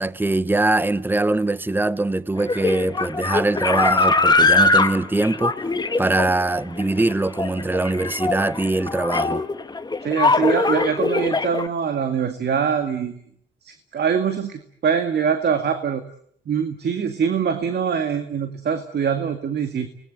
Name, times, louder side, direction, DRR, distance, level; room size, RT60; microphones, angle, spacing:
voice 1, 0.0-5.6 6.0-9.5, right 2 dB, 10° right, 1.0 m, -22 dB
sound 1, 2.4-11.7, left 3 dB, 20° left, 1.4 m, -21 dB
voice 2, 10.0-13.2 13.6-16.0 16.5-19.9, right 7 dB, 55° right, 2.2 m, -23 dB
30.0 x 20.0 x 8.2 m
cardioid pair, 90°, 20 cm